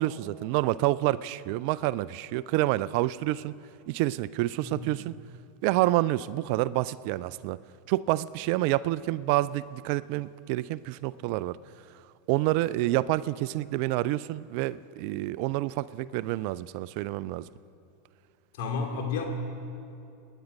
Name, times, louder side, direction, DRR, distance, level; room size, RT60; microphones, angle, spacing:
voice 1, 0.0-3.5 3.9-5.1 5.6-7.6 7.9-11.6 12.3-17.4, right 16 dB, 55° right, 18 dB, 0.4 m, -28 dB
voice 2, 18.6-19.2, left 5 dB, 65° left, 2 dB, 2.6 m, -31 dB
26.5 x 9.9 x 5.3 m, 2.6 s
hypercardioid pair, 90°, 0 cm